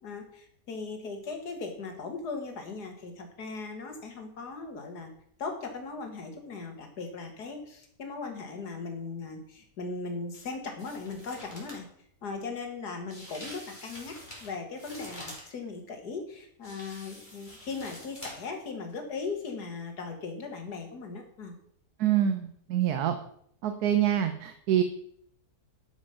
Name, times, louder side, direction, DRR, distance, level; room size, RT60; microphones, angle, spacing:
voice 1, 0.0-5.1 5.4-11.9 12.2-21.6, left 4 dB, 85° left, 5 dB, 2.1 m, -38 dB
sound 1, 10.3-10.5 10.8-11.8 13.1-15.5 16.6-18.6 18.9-19.0, left 1 dB, 30° left, 2.9 m, -46 dB
voice 2, 22.0-23.2 23.6-24.8, right 10 dB, 75° right, 8 dB, 1.2 m, -26 dB
11.5 x 5.3 x 5.6 m, 0.67 s
omnidirectional pair, 1.7 m